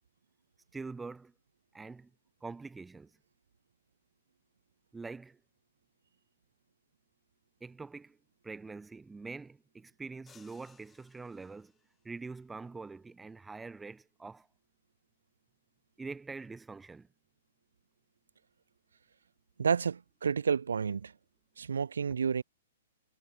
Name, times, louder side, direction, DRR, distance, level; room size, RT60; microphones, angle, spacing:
voice 1, 0.7-1.3 1.7-2.1 2.4-3.1 4.9-5.4 7.6-8.2 8.4-11.7 12.0-14.5 16.0-17.1, right 4 dB, 10° right, 1.5 m, -44 dB
sound 1, 10.3-12.1, left 7 dB, 15° left, 6.0 m, -63 dB
voice 2, 19.6-21.1 21.6-22.4, right 6 dB, 80° right, 0.6 m, -30 dB
hypercardioid pair, 120°, 0 cm